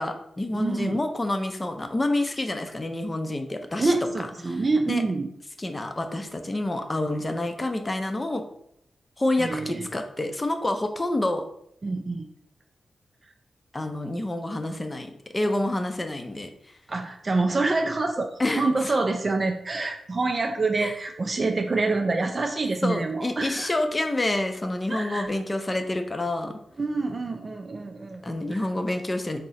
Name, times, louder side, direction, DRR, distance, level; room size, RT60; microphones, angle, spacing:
voice 1, 0.0-3.9 4.5-5.0 5.6-8.4 9.2-11.4 13.7-16.5 18.4-19.0 20.8-20.9 22.8-26.6 28.2-29.4, left 1 dB, 25° left, 6 dB, 0.5 m, -28 dB
voice 2, 0.5-1.0 3.8-5.3 9.4-9.9 11.8-12.3 16.9-18.3 18.6-23.7 24.9-25.3 26.8-28.6, right 3 dB, 40° right, 4 dB, 0.3 m, -26 dB
3.6 x 2.0 x 4.1 m, 0.73 s
cardioid pair, 65°, 0 cm